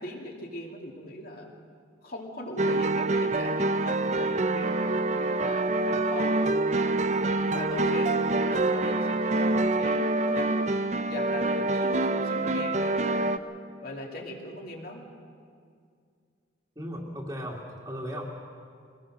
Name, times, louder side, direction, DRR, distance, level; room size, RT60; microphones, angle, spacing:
voice 1, 0.0-1.5 2.0-5.0 5.3-6.4 7.5-10.5 11.0-13.3 13.8-15.0, left 1 dB, 50° left, 0 dB, 2.7 m, -40 dB
sound 1, 2.6-13.4, right 2 dB, 35° right, 0.5 m, -26 dB
voice 2, 16.8-18.2, equal, 20° right, -6 dB, 2.2 m, -36 dB
23.5 x 19.0 x 6.3 m, 2.2 s
head